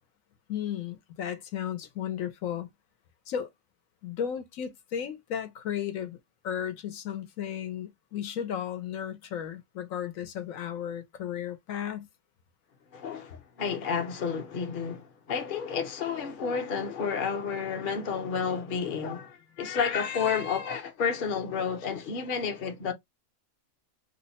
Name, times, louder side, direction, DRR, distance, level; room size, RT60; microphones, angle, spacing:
voice 1, 0.5-2.7 3.3-3.5 4.0-6.2 6.4-12.1, left 9 dB, 75° left, 1.0 m, -34 dB
voice 2, 12.9-22.9, left 6 dB, 45° left, 0.8 m, -31 dB
3.1 x 2.1 x 3.9 m
omnidirectional pair, 1.4 m